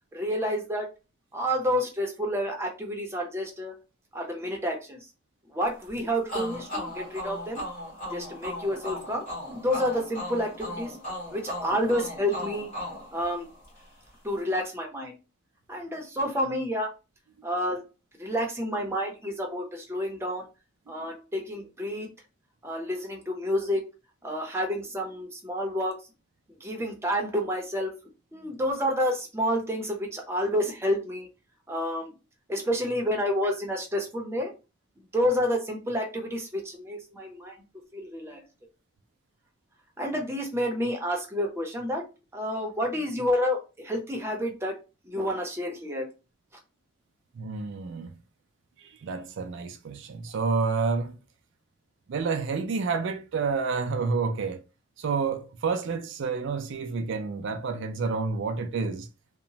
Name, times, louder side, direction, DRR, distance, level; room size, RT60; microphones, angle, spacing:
voice 1, 0.1-0.9 1.3-3.7 4.1-5.0 5.5-7.6 8.1-10.9 11.3-12.7 13.1-13.5 14.2-15.2 15.7-16.9 17.4-17.8 18.2-20.4 20.9-22.1 22.6-23.8 24.2-25.9 26.6-27.9 28.3-31.3 31.7-32.1 32.5-34.5 35.1-37.6 37.9-38.4 40.0-42.0 42.3-44.8 45.0-46.1, equal, 15° right, 0.6 m, -29 dB
sound 1, 6.3-13.9, left 1 dB, 40° left, 1.6 m, -37 dB
voice 2, 47.4-48.1 49.0-51.1 52.1-54.6 55.0-59.1, right 4 dB, 60° right, 0.4 m, -29 dB
2.9 x 2.1 x 2.7 m
head